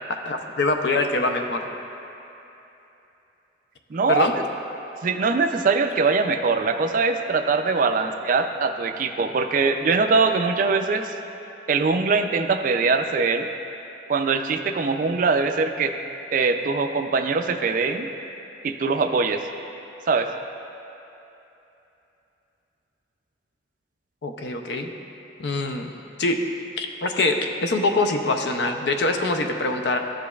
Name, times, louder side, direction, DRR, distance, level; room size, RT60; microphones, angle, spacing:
voice 1, 0.1-1.6 4.1-4.3 24.2-24.9 25.4-25.9 26.2-26.4 26.8-30.0, left 2 dB, 65° left, 5 dB, 0.5 m, -24 dB
voice 2, 3.9-4.4 5.0-11.0 11.7-13.5 14.1-15.9 16.3-18.1 18.6-19.4 20.1-20.3, right 4 dB, 45° right, 7 dB, 0.3 m, -22 dB
13.0 x 5.0 x 2.3 m, 3.0 s
head